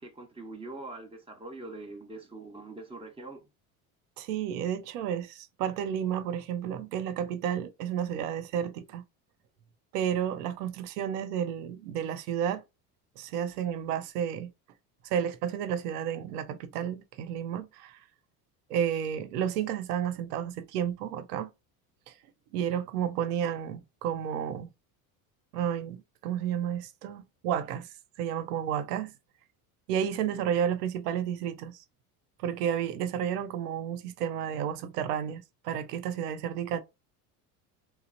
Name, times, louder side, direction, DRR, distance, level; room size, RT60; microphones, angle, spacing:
voice 1, 0.0-3.4 30.2-30.4, right 2 dB, 10° right, 0.8 m, -43 dB
voice 2, 4.2-9.0 9.9-12.6 13.2-14.5 15.0-18.0 18.7-21.5 22.1-22.2 22.5-24.7 25.5-27.9 28.2-29.1 29.9-31.8 32.4-36.8, right 9 dB, 85° right, 0.6 m, -31 dB
3.0 x 2.0 x 2.5 m
supercardioid pair, 90°, 45 cm